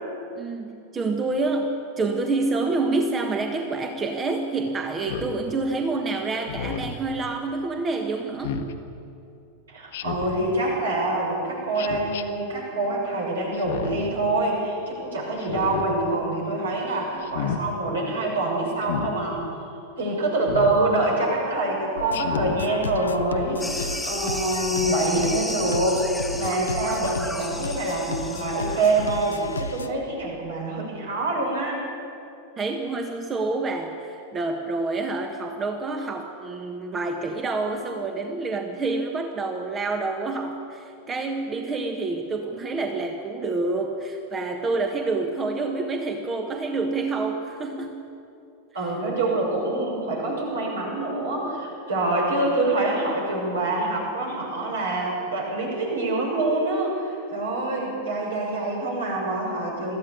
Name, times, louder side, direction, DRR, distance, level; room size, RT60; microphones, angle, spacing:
voice 1, 0.4-8.7 32.6-48.1, right 3 dB, 20° right, 4 dB, 1.5 m, -28 dB
Speech synthesizer, 5.0-5.4 6.5-7.0 8.4-8.7 9.9-10.4 11.8-12.2 13.5-14.1 15.4-15.9 17.2-17.6 18.8-19.1 20.5-20.8 22.1-22.6, left 7 dB, 55° left, 1.3 m, -31 dB
voice 2, 9.7-19.4 20.0-31.8 48.7-60.0, right 2 dB, 70° right, -2 dB, 7.0 m, -25 dB
sound 1, 22.0-29.9, left 4 dB, 75° left, 0.9 m, -34 dB
sound 2, 23.6-29.8, left 1 dB, ahead, 1.9 m, -34 dB
22.5 x 14.5 x 8.5 m, 2.7 s
figure-of-eight pair, 90°, 0 cm